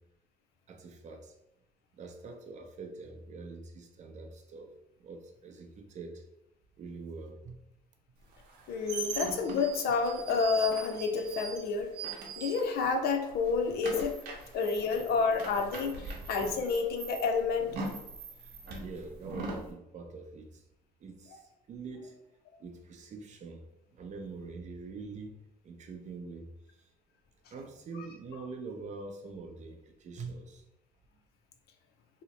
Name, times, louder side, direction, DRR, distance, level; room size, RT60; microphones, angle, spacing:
voice 1, 0.7-1.3 1.9-4.7 5.0-6.2 6.8-7.6 18.8-20.6 21.0-22.2 22.6-23.6 23.9-25.4 25.6-26.9 27.5-30.7, right 4 dB, 45° right, 4 dB, 0.6 m, -44 dB
sound 1, 8.4-13.0 13.3-19.7, right 3 dB, 75° right, 0.8 m, -41 dB
voice 2, 8.7-11.9 12.4-14.2 14.5-17.7, left 4 dB, 70° left, 5 dB, 0.5 m, -29 dB
2.9 x 2.1 x 4.0 m, 0.85 s
cardioid pair, 110°, 17 cm